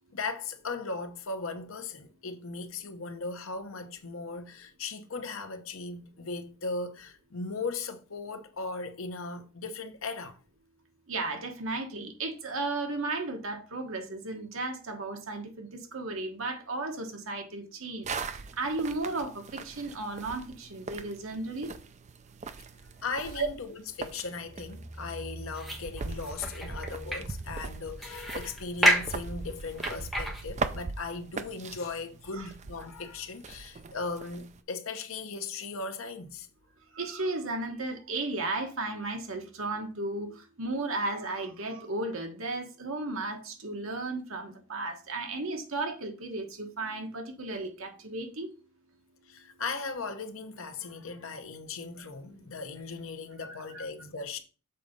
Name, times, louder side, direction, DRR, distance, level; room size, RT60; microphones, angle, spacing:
voice 1, 0.1-10.4 23.0-36.5 49.3-54.4, left 4 dB, 70° left, 0.9 m, -38 dB
voice 2, 11.1-21.7 23.4-23.5 32.4-32.5 36.9-48.5 53.7-53.8, right 2 dB, 70° right, 1.4 m, -34 dB
sound 1, 18.0-34.6, right 4 dB, 35° right, 0.5 m, -41 dB
sound 2, 23.9-30.4, equal, ahead, 1.3 m, -32 dB
6.7 x 4.0 x 5.2 m
head